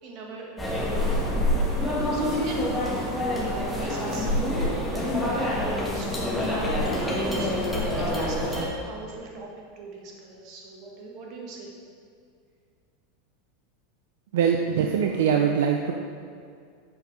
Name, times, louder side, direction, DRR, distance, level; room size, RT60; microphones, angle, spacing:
voice 1, 0.0-1.4 1.8-2.9 3.7-4.7 5.5-6.5 6.8-9.5 9.7-11.7, right 3 dB, 50° right, -1 dB, 1.7 m, -40 dB
sound 1, 0.6-8.6, left 1 dB, ahead, 1.5 m, -26 dB
voice 2, 14.3-15.9, right 7 dB, 80° right, 3 dB, 0.4 m, -22 dB
7.1 x 5.2 x 4.8 m, 2.3 s
supercardioid pair, 125°, 0 cm